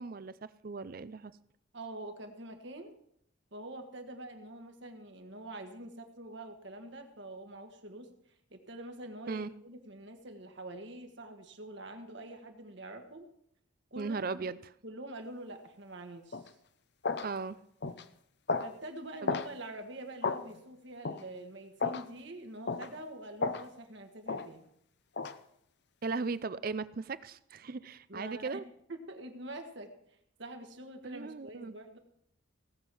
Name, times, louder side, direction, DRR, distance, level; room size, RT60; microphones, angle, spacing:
voice 1, 0.0-1.4 9.3-9.5 14.0-14.6 17.2-17.6 19.2-19.3 26.0-28.6 31.0-31.7, right 4 dB, 45° right, 16 dB, 0.5 m, -37 dB
voice 2, 1.7-2.9 3.5-13.3 13.9-14.5 14.8-16.5 18.6-24.6 28.1-28.6 28.9-32.0, right 1 dB, 60° right, 5 dB, 1.6 m, -46 dB
sound 1, 16.3-16.5 17.0-17.3 17.8-18.0 18.5-18.7 19.3-19.5 20.2-20.4 21.0-21.2 21.8-22.0 22.7-22.9 23.4-23.7 24.3-24.5 25.2-25.4, left 4 dB, 55° left, 0.7 m, -33 dB
17.5 x 7.4 x 6.1 m, 0.73 s
head